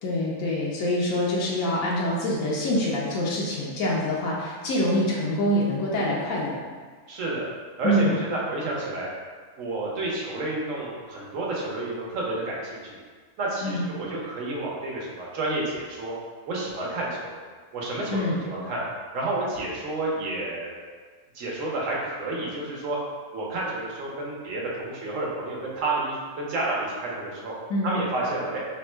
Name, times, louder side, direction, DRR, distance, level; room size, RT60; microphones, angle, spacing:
voice 1, 0.0-6.5 7.8-8.2 13.6-13.9 18.1-18.4 27.7-28.0, left 1 dB, 90° left, -5 dB, 1.1 m, -25 dB
voice 2, 7.1-7.4 7.8-9.1 9.6-13.0 13.4-16.1 16.5-17.4 17.7-18.8 19.1-20.7 21.3-23.0 23.3-27.5 27.8-28.6, right 2 dB, 70° right, -4 dB, 1.2 m, -30 dB
3.5 x 2.1 x 4.3 m, 1.5 s
omnidirectional pair, 1.4 m